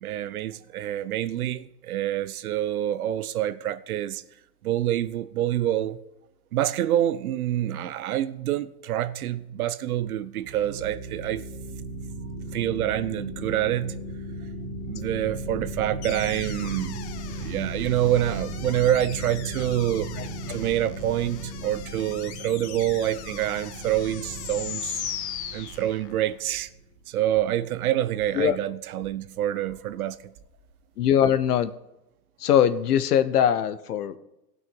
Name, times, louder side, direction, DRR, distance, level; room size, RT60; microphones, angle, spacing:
voice 1, 0.0-4.2 4.6-6.0 6.5-11.4 12.5-14.0 14.9-17.1 17.4-20.1 20.5-25.0 25.5-26.7 27.1-30.3, right 12 dB, 60° right, 0.7 m, -27 dB
sound 1, 10.4-26.7, right 1 dB, 35° right, 1.9 m, -36 dB
sound 2, 16.0-26.3, left 9 dB, 40° left, 1.2 m, -39 dB
sound 3, 24.0-31.6, right 5 dB, 10° right, 0.4 m, -56 dB
voice 2, 31.0-31.7 32.4-34.2, left 9 dB, 65° left, 1.0 m, -21 dB
16.5 x 6.2 x 5.3 m
hypercardioid pair, 150°, 50 cm